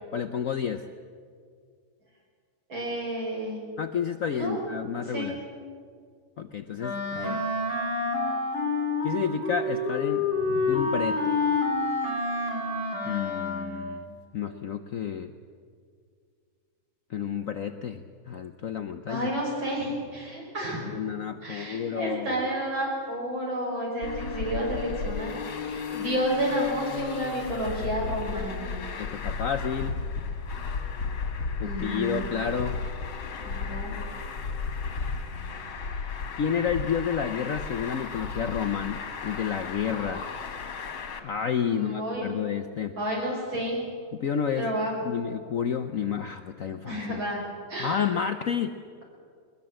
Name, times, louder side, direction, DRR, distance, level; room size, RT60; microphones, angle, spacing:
voice 1, 0.1-0.9 3.8-5.4 6.4-7.4 9.0-10.2 10.7-11.4 13.0-15.3 17.1-19.3 20.8-22.4 29.0-30.0 31.6-32.8 36.4-40.3 40.8-40.9 41.2-43.0 44.2-44.7 45.0-47.2 47.8-48.8, left 7 dB, 65° left, 8 dB, 0.8 m, -30 dB
voice 2, 2.7-3.6 4.3-4.6 5.1-5.4 10.4-10.6 19.1-20.9 21.4-25.3 25.6-28.8 31.6-32.3 33.4-33.9 41.7-42.3 43.0-43.9 44.6-44.9 46.8-47.4 47.7-48.0, equal, 75° right, -2 dB, 6.5 m, -31 dB
Wind instrument woodwind instrument, 6.8-14.0, left 3 dB, 30° left, 3.4 m, -28 dB
Traffic noise roadway noise, 24.0-41.2, left 5 dB, 85° left, 2.6 m, -34 dB
21.0 x 20.5 x 7.6 m, 2.1 s
omnidirectional pair, 2.2 m